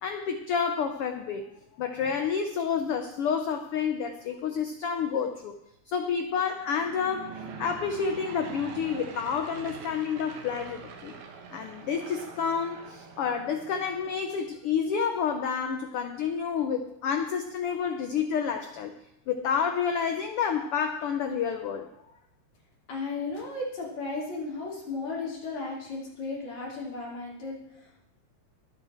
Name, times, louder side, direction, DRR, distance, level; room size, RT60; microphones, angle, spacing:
voice 1, 0.0-1.5 1.8-5.5 5.9-11.2 11.5-18.9 19.3-21.9, left 6 dB, 80° left, 6 dB, 1.3 m, -29 dB
Aircraft / Engine, 6.5-14.5, right 5 dB, 70° right, 2.6 m, -44 dB
voice 2, 22.9-28.1, left 3 dB, 60° left, -4 dB, 4.3 m, -35 dB
22.5 x 7.9 x 4.4 m, 0.80 s
omnidirectional pair, 3.6 m